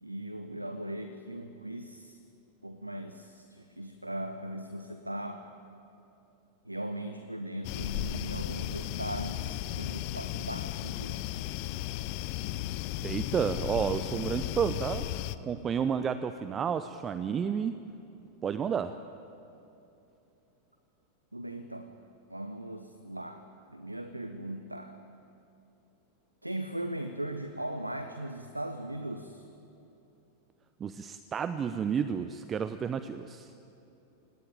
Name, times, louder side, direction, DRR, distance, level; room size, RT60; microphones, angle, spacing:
voice 1, 0.0-2.2 2.6-5.5 6.6-11.2 21.3-21.9 22.3-25.0 26.4-29.5, right 1 dB, 85° right, 8 dB, 1.1 m, -39 dB
sound 1, 7.6-15.4, left 13 dB, 45° left, 0.8 m, -35 dB
voice 2, 13.0-15.1 15.4-17.8 18.4-19.0 30.8-33.5, right 7 dB, 25° right, 12 dB, 0.8 m, -31 dB
25.5 x 19.0 x 9.2 m, 2.9 s
figure-of-eight pair, 90°, 0 cm